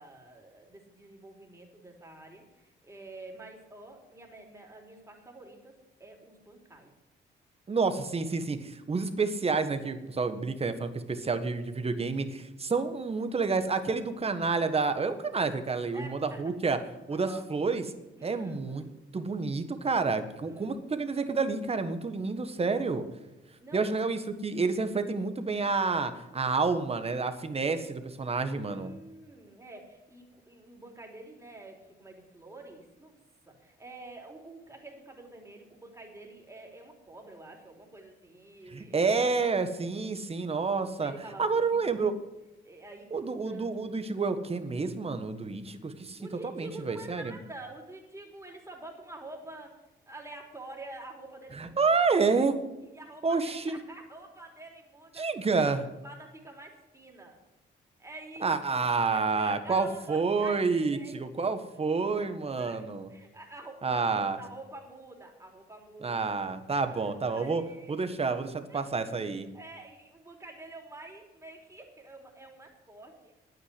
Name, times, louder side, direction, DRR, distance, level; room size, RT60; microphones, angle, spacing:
voice 1, 0.0-5.7 6.0-6.9 15.9-16.4 17.1-17.4 18.2-18.9 20.3-20.7 23.6-24.0 28.5-33.2 33.5-39.2 40.3-40.4 41.0-41.8 42.6-43.9 46.2-49.7 50.1-52.0 52.9-55.8 56.0-57.4 58.0-61.3 62.1-66.3 66.9-68.0 68.7-68.9 69.5-73.3, right 2 dB, 15° right, 1 dB, 3.5 m, -48 dB
voice 2, 7.7-16.8 17.1-17.8 18.2-18.8 19.1-23.0 23.7-28.9 38.7-41.1 41.4-42.1 43.1-46.2 46.6-47.4 51.5-52.6 53.2-53.7 55.2-55.8 58.4-63.1 63.8-64.4 66.0-67.6 67.9-69.5, right 4 dB, 30° right, 9 dB, 1.4 m, -29 dB
9.7 x 9.2 x 9.8 m, 1.0 s
cardioid pair, 90°, 20 cm